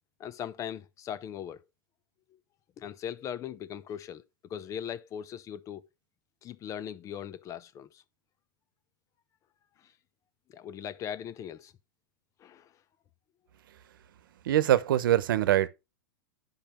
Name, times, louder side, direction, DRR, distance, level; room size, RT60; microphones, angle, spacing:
voice 1, 0.2-1.6 2.8-4.2 4.5-5.9 6.4-8.0 10.5-11.7 12.4-12.7, left 9 dB, 30° left, 0.8 m, -39 dB
voice 2, 14.4-15.7, right 12 dB, 75° right, 1.1 m, -23 dB
10.5 x 5.8 x 4.5 m
hypercardioid pair, 125°, 11 cm